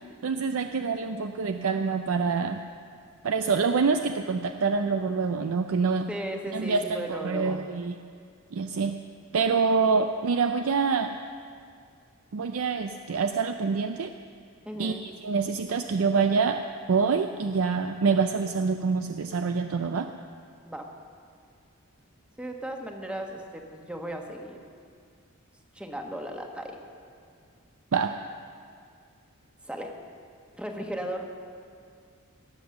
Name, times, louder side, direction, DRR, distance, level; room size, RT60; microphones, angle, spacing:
voice 1, 0.2-2.6 3.2-6.1 6.5-7.9 8.5-9.0 9.3-11.1 12.3-14.1 14.8-16.6 16.9-20.1 27.9-28.2, right 5 dB, 70° right, 7 dB, 0.5 m, -26 dB
voice 2, 6.1-7.6 14.7-15.1 20.7-20.9 22.4-24.6 25.7-26.8 29.6-30.0 30.6-31.3, right 1 dB, 5° right, 2 dB, 1.2 m, -36 dB
17.5 x 8.0 x 6.9 m, 2.2 s
head